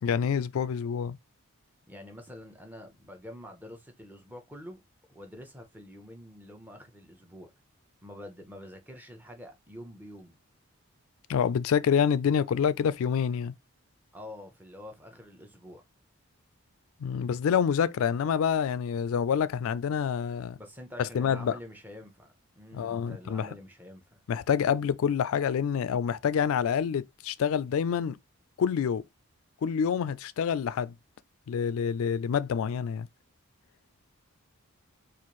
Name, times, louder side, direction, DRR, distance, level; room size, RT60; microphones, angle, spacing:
voice 1, 0.0-1.2 11.3-13.5 17.0-20.6 21.0-21.5 22.7-23.5 24.3-28.2 28.6-29.0 29.6-30.9 31.5-33.1, left 7 dB, 70° left, 0.3 m, -27 dB
voice 2, 1.9-4.8 5.1-7.5 8.0-10.4 14.1-15.8 20.6-24.2, left 1 dB, 10° right, 0.7 m, -47 dB
4.2 x 2.5 x 3.0 m
head